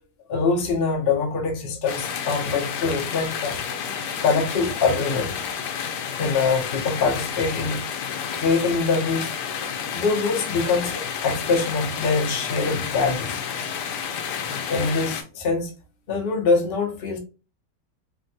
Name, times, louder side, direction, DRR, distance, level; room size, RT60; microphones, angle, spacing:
voice 1, 0.3-3.6 4.2-5.3 6.2-7.8 8.4-9.5 9.9-13.4 14.7-15.7 16.1-17.2, left 4 dB, 50° left, 0.7 m, -24 dB
sound 1, 1.9-15.2, left 7 dB, 75° left, 1.1 m, -30 dB
3.4 x 2.2 x 2.6 m
omnidirectional pair, 1.9 m